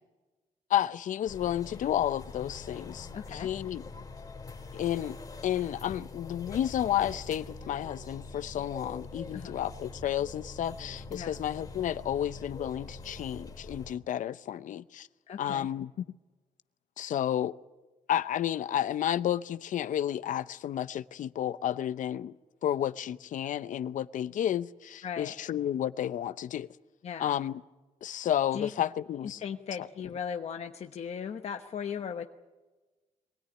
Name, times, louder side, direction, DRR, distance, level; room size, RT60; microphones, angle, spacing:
voice 1, 0.7-3.8 4.7-5.2 5.4-15.1 15.4-15.9 17.0-17.5 18.1-22.3 22.6-26.7 27.2-27.6 28.0-29.4, left 11 dB, 70° left, 0.7 m, -31 dB
sound 1, 1.3-14.0, left 3 dB, 30° left, 3.2 m, -44 dB
voice 2, 3.1-3.5 9.3-9.6 11.1-11.4 15.3-15.7 25.0-25.3 27.0-27.4 28.5-28.7 29.4-32.2, left 7 dB, 50° left, 1.1 m, -37 dB
23.0 x 17.0 x 9.9 m
cardioid pair, 100°, 14 cm